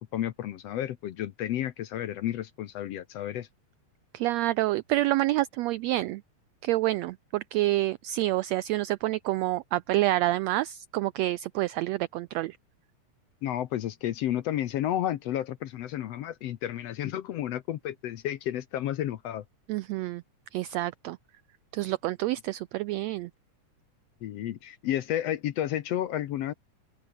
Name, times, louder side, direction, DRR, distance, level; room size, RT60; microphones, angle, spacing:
voice 1, 0.1-3.5 13.4-19.4 24.2-26.5, left 12 dB, 65° left, 1.8 m, -31 dB
voice 2, 4.1-6.2 6.6-12.6 19.7-20.2 20.5-21.2 21.7-23.3, right 16 dB, 85° right, 1.5 m, -28 dB
open air
omnidirectional pair, 3.6 m